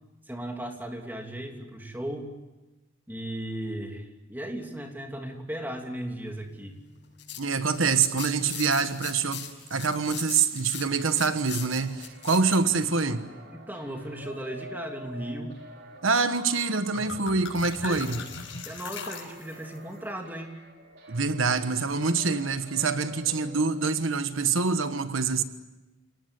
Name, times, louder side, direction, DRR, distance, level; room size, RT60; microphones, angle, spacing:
voice 1, 0.3-2.3 3.1-6.7 13.5-15.5 17.8-18.2 18.6-20.5, right 1 dB, 10° right, 2.9 m, -36 dB
sound 1, 7.0-12.6, left 10 dB, 65° left, 6.0 m, -40 dB
voice 2, 7.4-13.3 16.0-18.2 21.1-25.4, right 4 dB, 90° right, 1.3 m, -26 dB
sound 2, 10.9-23.9, right 1 dB, 60° right, 4.1 m, -49 dB
sound 3, 16.4-16.5 16.7-19.8, left 4 dB, 80° left, 5.8 m, -39 dB
29.0 x 18.5 x 9.7 m
head